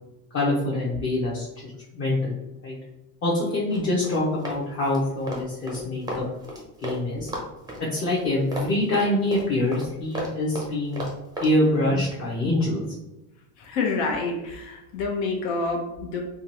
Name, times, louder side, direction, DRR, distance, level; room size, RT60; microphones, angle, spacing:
voice 1, 0.3-2.3 2.6-2.8 3.2-6.2 6.8-7.3 7.9-11.0 11.4-12.9, left 1 dB, 25° left, -6 dB, 0.9 m, -25 dB
Run, 3.7-7.0 7.3-11.5, right 1 dB, 10° right, 0.6 m, -34 dB
voice 2, 13.6-16.2, left 3 dB, 65° left, 1 dB, 1.1 m, -28 dB
3.7 x 2.4 x 2.9 m, 0.97 s
supercardioid pair, 125°, 48 cm